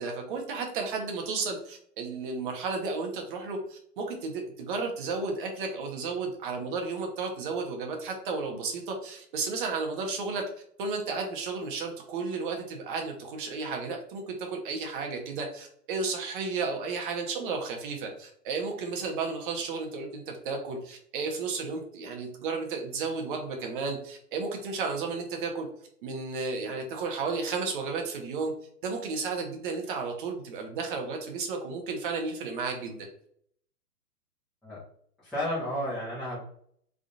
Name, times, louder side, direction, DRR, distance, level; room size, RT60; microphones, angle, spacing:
voice 1, 0.0-10.4 10.8-25.7 26.0-28.5 28.8-33.1, right 4 dB, 35° right, 2 dB, 0.9 m, -33 dB
voice 2, 35.2-36.4, equal, ahead, -14 dB, 0.5 m, -32 dB
3.6 x 2.4 x 3.9 m, 0.63 s
hypercardioid pair, 140°, 47 cm